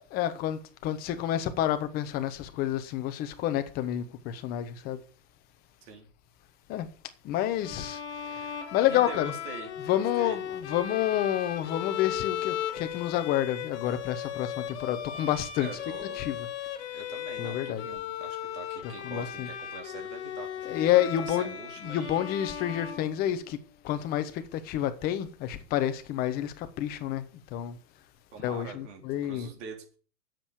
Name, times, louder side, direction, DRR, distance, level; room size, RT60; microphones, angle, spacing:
voice 1, 0.1-5.0 6.7-6.9 7.2-8.0 8.7-9.3 9.8-15.7 16.1-16.5 17.4-17.8 18.8-19.5 20.6-21.5 21.8-23.6 23.8-27.2 27.5-27.8 28.4-29.5, left 12 dB, 20° left, 1.0 m, -29 dB
Bowed string instrument, 7.6-23.7, left 10 dB, 45° left, 2.4 m, -37 dB
voice 2, 8.9-10.4 15.6-16.2 16.9-20.9 21.2-22.2 28.3-30.0, right 5 dB, 45° right, 4.1 m, -44 dB
9.8 x 7.8 x 8.2 m
hypercardioid pair, 135°, 50 cm